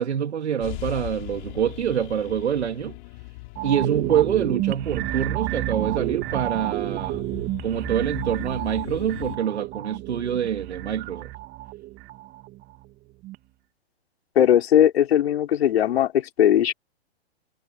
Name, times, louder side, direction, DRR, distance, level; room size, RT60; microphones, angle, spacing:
voice 1, 0.0-3.0 3.6-7.2 7.6-11.3, right 9 dB, 80° right, 2.4 m, -26 dB
sound 1, 0.6-9.4, left 24 dB, 45° left, 5.1 m, -39 dB
sound 2, 3.6-12.9 13.2-13.4, right 18 dB, 30° right, 1.9 m, -30 dB
voice 2, 14.4-16.7, left 10 dB, 65° left, 4.3 m, -19 dB
hypercardioid pair, 135°, 33 cm